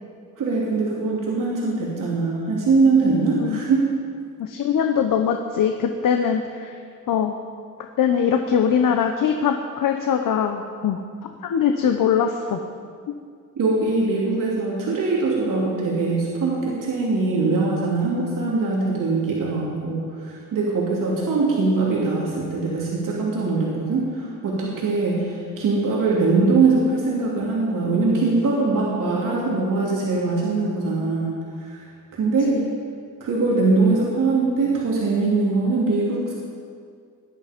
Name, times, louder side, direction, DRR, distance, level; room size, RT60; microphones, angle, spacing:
voice 1, 0.4-3.9 13.6-31.8 32.1-32.6 33.2-36.3, right 3 dB, 70° right, -5 dB, 3.0 m, -22 dB
voice 2, 4.4-6.8 7.1-7.4 8.0-11.0 11.4-12.6 32.5-32.7, left 7 dB, 80° left, 5 dB, 1.0 m, -22 dB
19.0 x 12.0 x 5.2 m, 2.1 s
wide cardioid pair, 160°, 33 cm